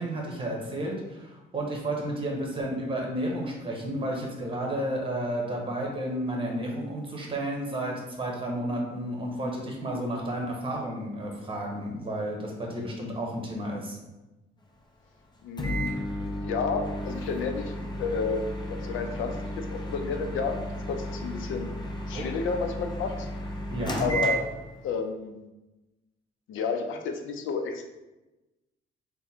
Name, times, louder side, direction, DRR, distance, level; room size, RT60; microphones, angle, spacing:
voice 1, 0.0-14.0 22.1-22.3 23.7-24.1, right 1 dB, 25° right, -1 dB, 1.1 m, -32 dB
voice 2, 15.4-16.0 16.4-21.7 22.1-23.3 24.0-24.4 24.8-25.4 26.5-27.8, left 5 dB, 80° left, 5 dB, 0.6 m, -31 dB
Microwave oven, 15.6-25.0, right 1 dB, 20° left, 0.7 m, -33 dB
3.6 x 2.2 x 4.4 m, 1.0 s
cardioid pair, 90°, 20 cm